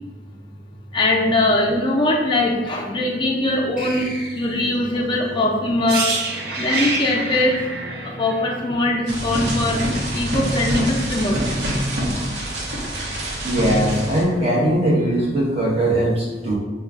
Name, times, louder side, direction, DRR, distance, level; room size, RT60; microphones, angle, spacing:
voice 1, 0.9-6.1 6.6-7.6 8.2-9.8 10.1-11.7, left 1 dB, 25° left, -1 dB, 0.3 m, -21 dB
sound 1, 3.8-4.9, equal, 5° right, 0.9 m, -35 dB
sound 2, 5.9-9.7 10.0-10.2, right 3 dB, 60° right, 0.5 m, -27 dB
sound 3, 9.1-14.2, equal, 80° right, 0.9 m, -25 dB
voice 2, 13.4-16.6, right 1 dB, 35° right, -6 dB, 1.0 m, -20 dB
5.2 x 2.2 x 2.4 m, 1.3 s
head